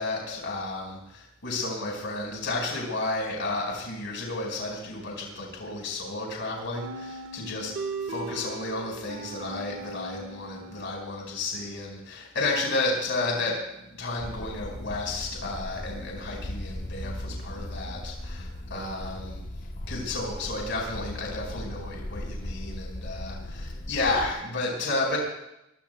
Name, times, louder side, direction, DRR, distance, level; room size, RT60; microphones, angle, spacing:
voice 1, 0.0-7.7 8.1-13.6 13.9-19.4 19.9-25.2, left 2 dB, 65° left, -1 dB, 5.0 m, -32 dB
sound 1, 6.8-11.4, right 3 dB, 60° right, 1.7 m, -39 dB
sound 2, 14.2-24.3, left 1 dB, 40° left, 1.1 m, -38 dB
23.5 x 22.5 x 2.3 m, 0.85 s
head